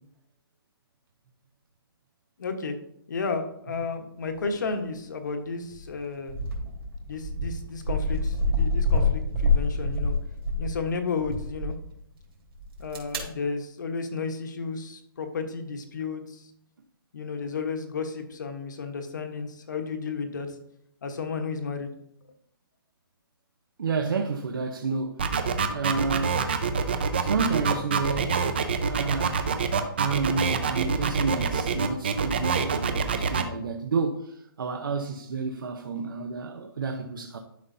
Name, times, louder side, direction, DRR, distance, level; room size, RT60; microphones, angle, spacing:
voice 1, 2.4-2.7 3.1-6.4 7.1-10.1 10.6-11.7 12.8-16.5 17.1-20.6 21.0-21.9, left 4 dB, 50° left, 1.2 m, -32 dB
sound 1, 5.7-5.9 6.3-10.8 11.2-11.7 12.6-13.2, left 2 dB, 75° right, 2.9 m, -26 dB
voice 2, 23.8-25.3 25.7-26.5 27.1-28.4 28.8-29.4 30.0-37.4, right 4 dB, 60° right, 0.9 m, -30 dB
sound 2, 25.2-33.4, right 5 dB, 25° right, 0.5 m, -25 dB
12.0 x 5.5 x 2.7 m
hypercardioid pair, 180°, 13 cm